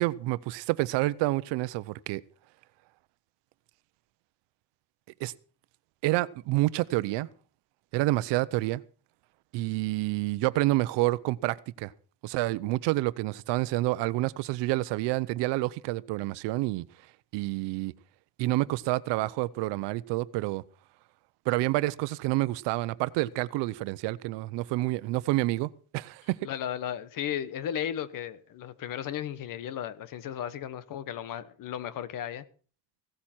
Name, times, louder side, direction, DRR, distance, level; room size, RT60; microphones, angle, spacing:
voice 1, 0.0-2.2 5.2-5.3 6.0-7.3 7.9-8.8 9.5-11.9 12.2-16.8 17.3-17.9 18.4-20.6 21.5-26.4, right 19 dB, 90° right, 0.8 m, -28 dB
voice 2, 26.4-32.4, left 10 dB, 50° left, 1.2 m, -35 dB
16.5 x 13.5 x 4.4 m
cardioid pair, 155°, 41 cm